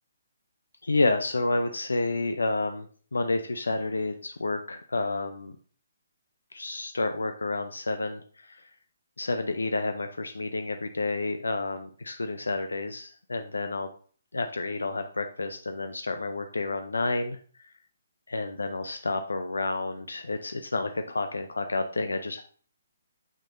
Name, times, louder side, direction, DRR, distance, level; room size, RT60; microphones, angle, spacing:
voice 1, 0.8-5.6 6.5-8.7 9.2-13.9 14.3-17.4 18.3-22.4, left 2 dB, 75° left, 8 dB, 0.5 m, -30 dB
6.6 x 6.0 x 2.6 m, 0.43 s
figure-of-eight pair, 135°, 0 cm